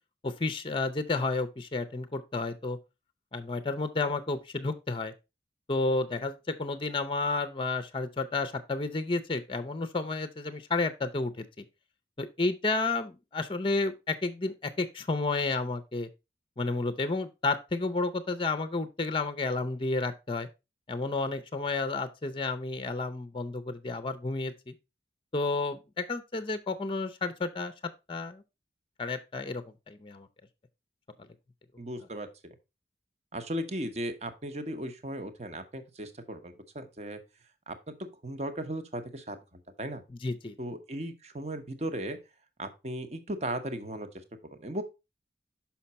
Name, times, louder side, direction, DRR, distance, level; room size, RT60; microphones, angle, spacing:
voice 1, 0.2-2.8 3.3-5.1 5.7-11.6 12.2-16.1 16.6-20.5 20.9-24.7 25.3-27.7 28.1-28.4 29.0-30.3 40.1-40.5, left 3 dB, 30° left, 0.5 m, -31 dB
voice 2, 31.8-32.3 33.3-37.2 37.7-37.8 38.2-39.4 39.8-40.0 40.6-42.2 42.6-44.1 44.4-44.8, right 1 dB, 35° right, 0.9 m, -36 dB
5.8 x 5.7 x 4.1 m
head